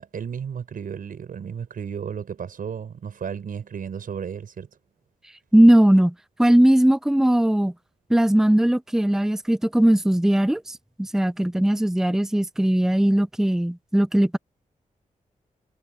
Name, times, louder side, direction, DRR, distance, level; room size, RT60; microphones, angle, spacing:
voice 1, 0.0-4.7, right 7 dB, 85° right, 7.2 m, -33 dB
voice 2, 5.5-6.1 6.4-7.7 8.1-14.4, right 1 dB, 5° right, 0.5 m, -19 dB
wide cardioid pair, 90°, 14 cm